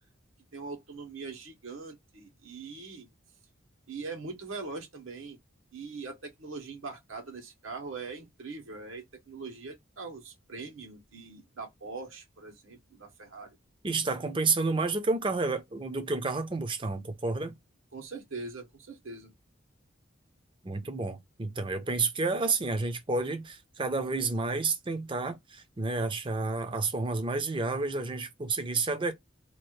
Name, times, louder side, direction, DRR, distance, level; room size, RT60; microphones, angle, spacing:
voice 1, 0.5-3.1 3.9-5.4 5.7-13.5 17.9-19.3, right 4 dB, 85° right, 1.3 m, -42 dB
voice 2, 13.8-17.6 20.6-29.1, right 3 dB, 25° right, 0.6 m, -30 dB
2.9 x 2.5 x 3.1 m
head